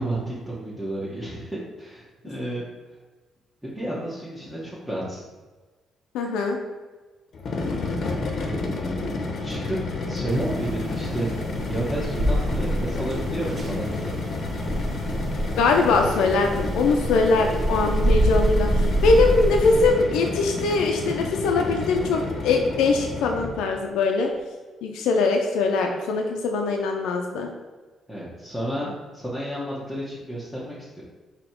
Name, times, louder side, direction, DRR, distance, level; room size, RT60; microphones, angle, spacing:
voice 1, 0.0-2.7 3.6-5.2 8.4-9.1 9.4-9.8 10.0-11.3 11.7-14.2 28.1-31.0, right 1 dB, 5° right, -8 dB, 1.1 m, -31 dB
voice 2, 6.1-6.6 15.6-24.3 24.8-27.5, left 3 dB, 90° left, 2 dB, 0.4 m, -22 dB
sound 1, 7.3-23.8, left 3 dB, 55° left, 0.7 m, -31 dB
sound 2, 10.3-19.9, right 1 dB, 40° right, 0.8 m, -26 dB
4.0 x 2.9 x 4.4 m, 1.3 s
cardioid pair, 90°, 0 cm